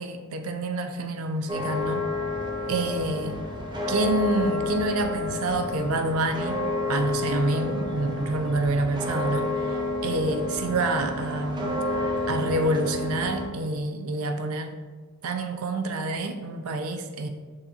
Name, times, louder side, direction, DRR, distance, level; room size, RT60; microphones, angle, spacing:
voice 1, 0.0-2.0 2.7-3.4 3.9-6.6 6.9-11.8 12.3-14.8 15.2-17.3, right 2 dB, 80° right, 6 dB, 0.5 m, -27 dB
sound 1, 1.5-13.5, left 2 dB, 20° right, 0.5 m, -30 dB
6.2 x 2.6 x 2.9 m, 1.4 s
head